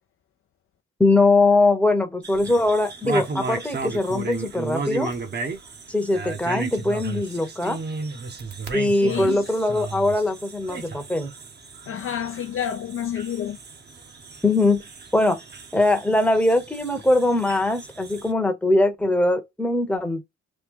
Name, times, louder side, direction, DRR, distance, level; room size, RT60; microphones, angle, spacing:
voice 1, 1.0-5.1 5.9-7.8 8.7-11.3 14.4-14.8 15.1-15.4 15.7-20.2, left 2 dB, 5° left, 0.9 m, -21 dB
sound 1, 2.2-18.3, right 4 dB, 35° right, 0.8 m, -34 dB
voice 2, 9.0-9.4 11.9-13.6, left 9 dB, 45° left, 0.5 m, -29 dB
3.1 x 2.2 x 3.6 m
cardioid pair, 90°, 30 cm